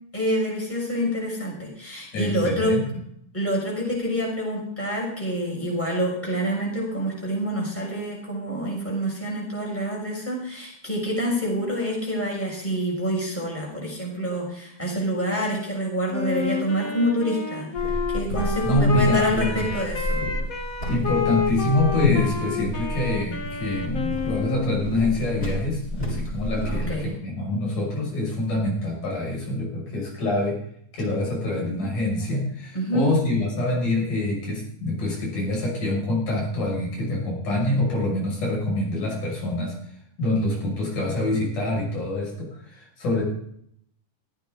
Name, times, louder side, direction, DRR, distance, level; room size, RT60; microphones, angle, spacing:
voice 1, 0.1-2.7 3.3-20.2 26.6-27.1 32.7-33.1, equal, 5° left, -3 dB, 6.1 m, -27 dB
voice 2, 2.1-2.8 18.6-19.6 20.9-30.6 30.9-39.7 40.2-43.2, left 1 dB, 70° left, -3 dB, 7.8 m, -25 dB
Wind instrument woodwind instrument, 16.1-24.9, left 6 dB, 40° left, 1.2 m, -29 dB
sound 1, 17.7-27.0, equal, 20° left, 7.5 m, -30 dB
17.5 x 15.0 x 3.9 m, 0.68 s
omnidirectional pair, 3.7 m